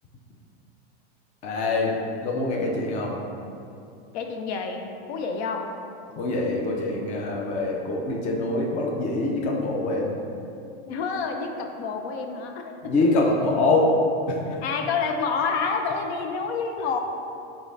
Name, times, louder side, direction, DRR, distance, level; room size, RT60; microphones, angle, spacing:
voice 1, 1.4-3.2 6.2-10.2 12.8-14.0 14.3-14.4, left 2 dB, 25° left, -1 dB, 0.4 m, -24 dB
voice 2, 4.1-5.7 10.9-12.9 14.6-17.0, left 5 dB, 80° left, 4 dB, 0.6 m, -28 dB
5.0 x 3.6 x 2.6 m, 2.6 s
supercardioid pair, 140°, 32 cm